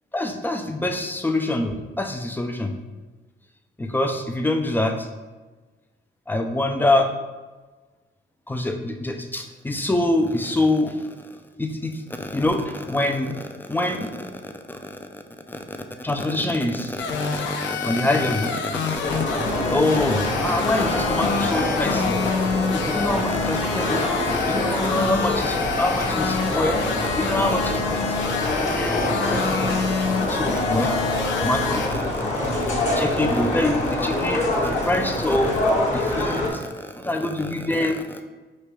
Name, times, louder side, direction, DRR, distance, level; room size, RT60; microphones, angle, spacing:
voice 1, 0.1-2.7 3.8-5.1 6.3-7.1 8.5-11.1 11.6-15.0 15.5-19.2 19.5-22.2 22.5-29.0 29.3-32.2 32.5-35.6 35.9-38.2, left 1 dB, 10° left, 4 dB, 0.3 m, -26 dB
sound 1, 17.0-31.9, left 5 dB, 70° left, 0.5 m, -27 dB
sound 2, 19.0-36.5, left 1 dB, 35° left, 1.1 m, -25 dB
5.1 x 2.2 x 3.1 m, 1.2 s
cardioid pair, 90°, 20 cm